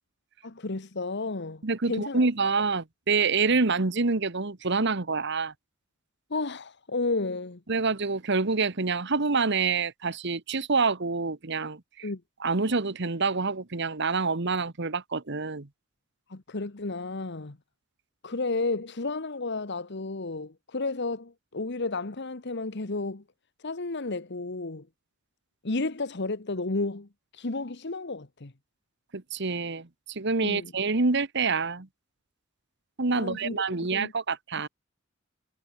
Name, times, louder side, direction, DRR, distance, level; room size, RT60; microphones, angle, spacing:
voice 1, 0.4-2.2 6.3-7.6 12.0-12.2 16.3-17.6 18.2-23.2 23.6-24.9 25.6-27.1 27.3-28.5 30.4-30.7 33.1-34.1, left 3 dB, 60° left, 1.3 m, -32 dB
voice 2, 1.6-5.5 7.7-12.1 12.4-15.7 29.1-31.9 33.0-34.7, right 4 dB, 60° right, 1.4 m, -27 dB
head